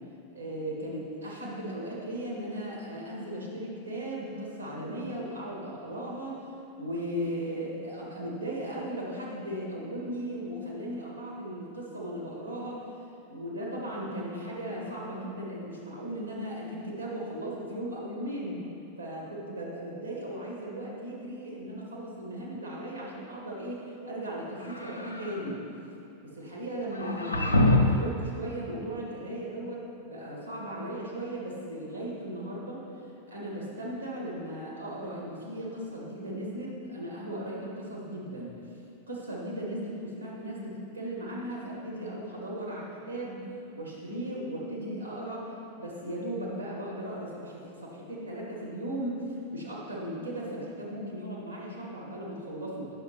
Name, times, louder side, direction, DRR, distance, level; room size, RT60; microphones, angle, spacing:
voice 1, 0.3-6.5 6.8-12.8 13.3-18.6 19.0-25.6 26.2-27.6 27.9-38.5 39.1-43.4 43.7-45.5 45.8-49.2 49.5-52.9, right 1 dB, 80° right, -4 dB, 1.8 m, -37 dB
sound 1, 24.6-25.5 26.9-28.1, left 1 dB, 80° left, 0.5 m, -25 dB
9.5 x 6.5 x 3.0 m, 2.8 s
figure-of-eight pair, 90°, 0 cm